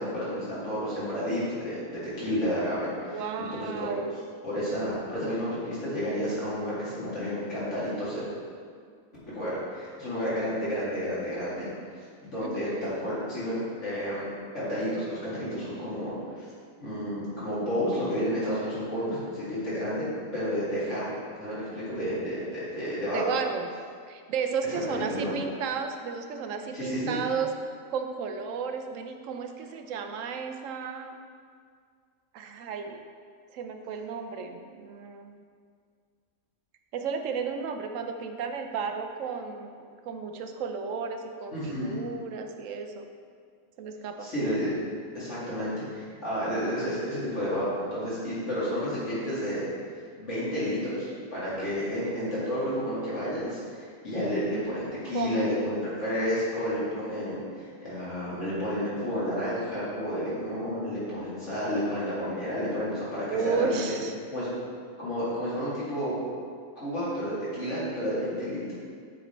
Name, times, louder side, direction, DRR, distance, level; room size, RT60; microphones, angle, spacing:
voice 1, 0.0-3.9 4.4-8.2 9.3-11.7 12.2-16.5 16.8-21.1 21.4-23.2 24.9-25.3 26.7-27.2 41.5-42.0 44.2-44.7 45.1-49.6 50.2-63.8 64.3-64.5 65.0-66.2 66.8-68.7, equal, 55° left, -10 dB, 2.4 m, -31 dB
voice 2, 3.1-4.2 12.4-12.9 23.1-23.7 24.1-27.5 27.9-31.2 32.3-33.0 33.5-35.4 36.9-43.1 43.8-44.3 55.1-55.5 63.3-64.1, right 5 dB, 70° right, 5 dB, 0.9 m, -33 dB
8.4 x 3.8 x 4.3 m, 2.1 s
omnidirectional pair, 1.5 m